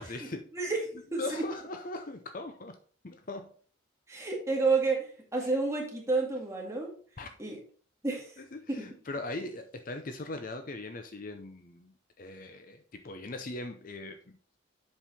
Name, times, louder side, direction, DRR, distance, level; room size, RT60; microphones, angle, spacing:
voice 1, 0.0-0.4 1.2-2.8 3.0-3.5 7.2-7.3 8.4-11.9 12.2-14.2, left 2 dB, 40° left, 7 dB, 0.6 m, -40 dB
voice 2, 0.5-1.4 4.1-6.9 7.4-7.6 8.0-8.4 8.7-8.9, right 3 dB, 15° right, -1 dB, 1.9 m, -30 dB
7.4 x 5.4 x 4.1 m, 0.43 s
head